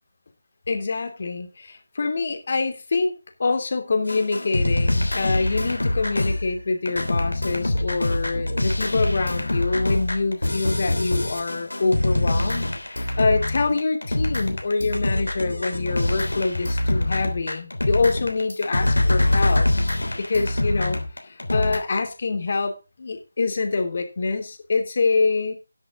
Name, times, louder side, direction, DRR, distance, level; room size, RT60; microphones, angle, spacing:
voice 1, 0.7-3.1 3.4-19.7 20.2-25.5, left 3 dB, 45° left, 6 dB, 2.8 m, -25 dB
sound 1, 4.1-21.8, left 1 dB, 90° left, 3.2 m, -24 dB
12.0 x 10.5 x 3.8 m, 0.28 s
figure-of-eight pair, 165°, 0 cm